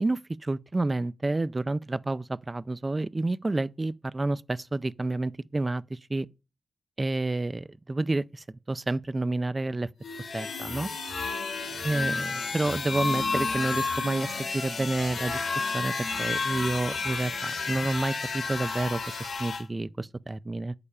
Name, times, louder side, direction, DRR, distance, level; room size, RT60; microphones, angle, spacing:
voice 1, 0.0-6.3 7.0-9.9 10.3-10.9 11.8-14.3 14.5-15.4 15.7-15.9 16.2-20.7, right 2 dB, 30° right, 0.4 m, -29 dB
sound 1, 10.0-19.6, left 4 dB, 90° left, 2.3 m, -31 dB
9.9 x 6.8 x 5.5 m
wide cardioid pair, 100°, 0 cm